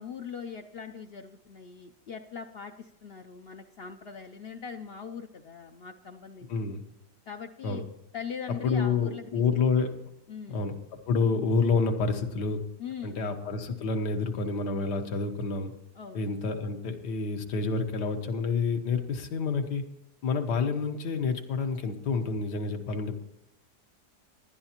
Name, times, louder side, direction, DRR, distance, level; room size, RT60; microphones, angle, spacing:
voice 1, 0.0-6.8 7.3-7.8 8.1-9.4 10.3-10.7 12.8-13.3 15.9-16.3, left 6 dB, 70° left, 5 dB, 0.5 m, -41 dB
voice 2, 6.5-6.8 7.6-7.8 8.5-10.0 10.5-10.7 11.1-12.6 13.0-15.7 16.1-19.8 20.2-23.2, left 4 dB, 85° left, 6 dB, 1.7 m, -28 dB
19.0 x 11.5 x 2.9 m, 0.85 s
omnidirectional pair, 1.8 m